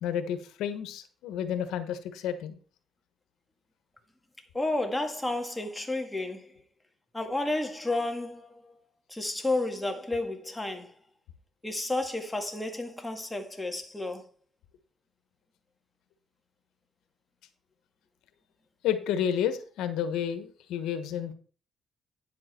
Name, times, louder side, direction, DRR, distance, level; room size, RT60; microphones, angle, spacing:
voice 1, 0.0-2.6 18.8-21.3, left 9 dB, 90° left, 1.3 m, -31 dB
voice 2, 4.5-6.5 7.1-8.7 9.1-10.9 11.6-14.3, left 2 dB, 10° left, 2.0 m, -31 dB
9.9 x 7.7 x 4.4 m
cardioid pair, 90°, 0 cm